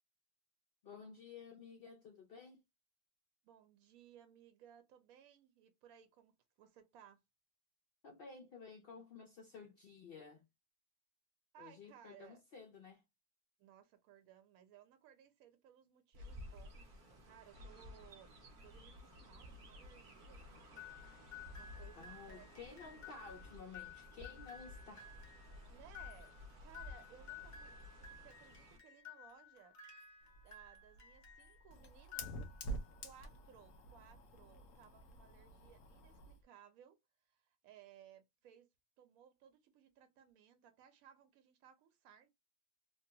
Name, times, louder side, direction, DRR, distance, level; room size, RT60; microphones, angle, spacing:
voice 1, 0.8-2.6 8.0-10.4 11.6-13.0 22.0-25.1, left 5 dB, 85° left, 0.5 m, -54 dB
voice 2, 3.4-7.2 11.5-12.4 13.6-18.3 18.6-20.9 21.5-22.5 22.9-23.1 25.7-26.3 26.6-30.0 30.4-32.7 33.0-37.0 37.2-38.7 39.0-42.3, right 9 dB, 70° right, 1.1 m, -62 dB
Chirp tweet, 16.1-28.8, left 1 dB, 45° right, 0.7 m, -55 dB
sound 1, 20.8-31.6 32.0-32.9, left 7 dB, 40° left, 0.7 m, -55 dB
Fire, 30.2-36.4, right 1 dB, 65° left, 0.9 m, -49 dB
3.2 x 2.2 x 2.7 m
omnidirectional pair, 1.6 m